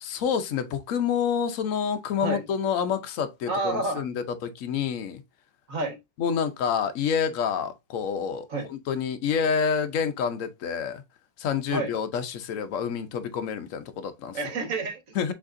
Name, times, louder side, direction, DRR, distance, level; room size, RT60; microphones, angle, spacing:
voice 1, 0.0-5.2 6.2-11.0 11.4-14.4 15.1-15.3, left 7 dB, 65° left, 0.8 m, -28 dB
voice 2, 3.5-4.0 5.7-6.0 8.5-8.7 11.7-11.9 14.3-15.1, right 2 dB, 50° right, 1.5 m, -29 dB
6.2 x 3.3 x 2.6 m
omnidirectional pair, 1.9 m